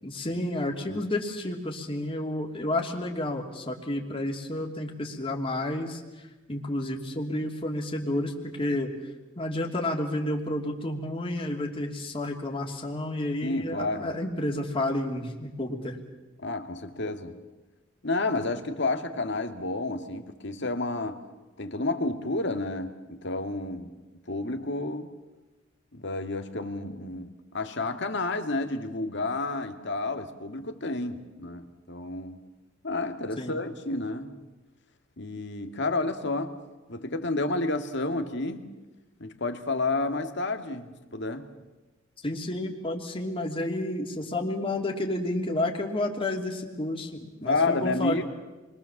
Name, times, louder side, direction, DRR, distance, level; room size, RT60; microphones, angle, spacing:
voice 1, 0.0-8.9 9.4-16.0 33.4-33.6 42.2-48.3, left 1 dB, 30° left, 3.0 m, -31 dB
voice 2, 13.4-14.1 16.4-17.3 18.0-21.2 21.6-23.9 24.3-25.1 25.9-32.4 32.8-34.4 35.2-36.6 36.9-38.7 39.2-41.5 47.4-48.2, left 2 dB, 65° left, 2.1 m, -30 dB
29.0 x 23.0 x 7.3 m
head